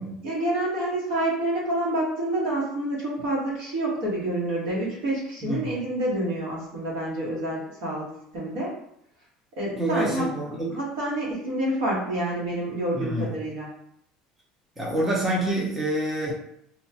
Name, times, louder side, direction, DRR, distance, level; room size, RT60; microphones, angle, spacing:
voice 1, 0.2-8.1 8.3-8.7 9.6-10.3 10.7-13.7, right 1 dB, 75° right, -4 dB, 1.2 m, -28 dB
voice 2, 5.4-5.7 9.8-10.8 12.9-13.4 14.8-16.3, right 1 dB, 10° right, -4 dB, 0.5 m, -27 dB
2.8 x 2.2 x 2.8 m, 0.74 s
cardioid pair, 175°, 2 cm